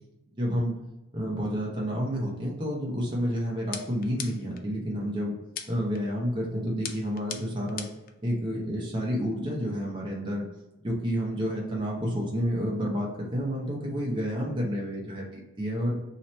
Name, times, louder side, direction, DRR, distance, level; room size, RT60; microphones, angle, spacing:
voice 1, 0.4-0.8 1.1-5.3 5.7-7.9 8.2-10.5 10.8-15.9, equal, 20° right, -3 dB, 0.7 m, -30 dB
sound 1, 3.7-4.6 5.6-6.0 6.8-8.1, left 8 dB, 40° left, 0.4 m, -39 dB
3.0 x 3.0 x 4.1 m, 0.97 s
head